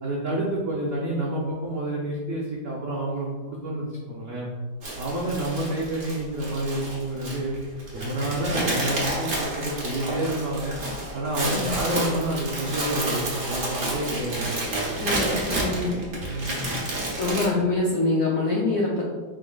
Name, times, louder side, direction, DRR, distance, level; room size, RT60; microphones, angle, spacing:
voice 1, 0.0-4.5 5.0-7.6 7.9-10.8 11.1-14.6 16.2-16.7, right 1 dB, 85° right, -5 dB, 0.6 m, -29 dB
sound 1, 4.8-17.5, right 1 dB, 45° right, 1.2 m, -30 dB
voice 2, 14.9-16.0 17.2-19.0, left 2 dB, 85° left, -4 dB, 0.7 m, -25 dB
5.1 x 3.9 x 2.3 m, 1.4 s
omnidirectional pair, 2.3 m